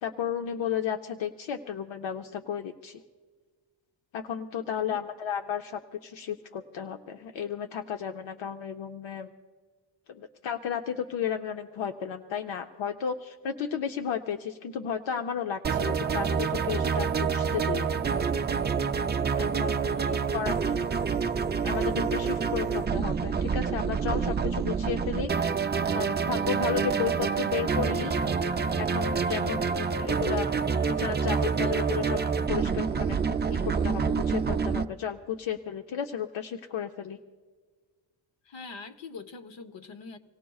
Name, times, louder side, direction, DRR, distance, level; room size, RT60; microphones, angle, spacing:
voice 1, 0.0-3.0 4.1-9.3 10.1-18.0 19.4-19.9 20.3-20.9 21.6-25.3 25.9-28.1 28.8-30.5 30.9-32.2 32.5-33.2 33.5-37.2, left 8 dB, 85° left, 5 dB, 0.7 m, -33 dB
sound 1, 15.6-34.8, right 6 dB, 25° right, 0.4 m, -27 dB
voice 2, 19.9-20.2 31.6-31.8 38.5-40.2, left 4 dB, 70° left, 9 dB, 1.0 m, -43 dB
26.5 x 17.5 x 2.3 m, 1.5 s
wide cardioid pair, 140°, 45 cm